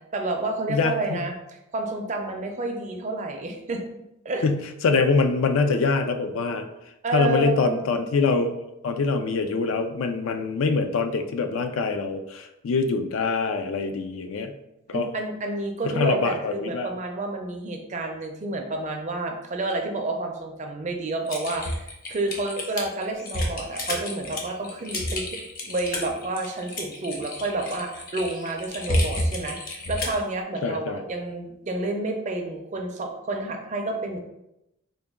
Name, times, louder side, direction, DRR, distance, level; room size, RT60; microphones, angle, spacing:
voice 1, 0.1-3.8 4.2-4.4 7.0-7.8 14.9-25.2 25.6-34.2, right 2 dB, 35° right, 3 dB, 0.4 m, -30 dB
voice 2, 0.7-1.3 4.4-6.7 7.1-8.6 8.8-14.5 14.9-15.1 15.8-16.9 30.6-31.0, left 4 dB, 80° left, 7 dB, 0.4 m, -24 dB
Typing, 21.3-30.2, left 1 dB, 45° left, 0.7 m, -30 dB
3.9 x 2.2 x 3.5 m, 0.88 s
head